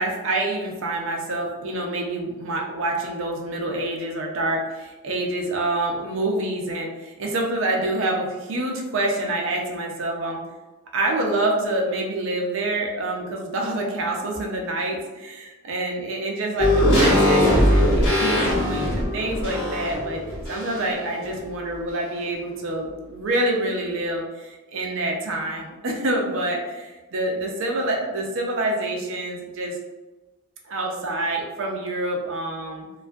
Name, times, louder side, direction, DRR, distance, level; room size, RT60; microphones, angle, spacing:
voice 1, 0.0-10.4 10.9-20.2 20.5-29.8 30.6-32.9, right 2 dB, 65° right, 0 dB, 0.5 m, -27 dB
sound 1, 16.6-21.1 21.4-21.5, left 1 dB, 80° left, 0.9 m, -20 dB
2.5 x 2.3 x 2.3 m, 1.2 s
head